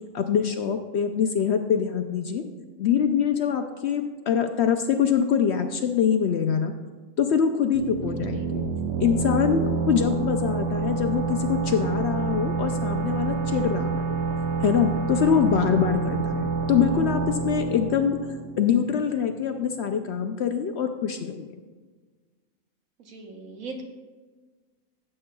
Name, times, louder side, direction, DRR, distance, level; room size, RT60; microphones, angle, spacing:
voice 1, 0.1-2.4 2.8-6.7 7.2-8.6 9.0-14.2 14.6-18.2 18.6-21.5, left 7 dB, 65° left, 6 dB, 0.7 m, -24 dB
sound 1, 7.7-19.2, right 5 dB, 60° right, 0.9 m, -28 dB
voice 2, 8.0-8.5 10.3-10.4 15.5-15.6 23.0-23.8, right 3 dB, 75° right, 3 dB, 1.4 m, -41 dB
15.5 x 7.6 x 2.2 m, 1.4 s
omnidirectional pair, 1.5 m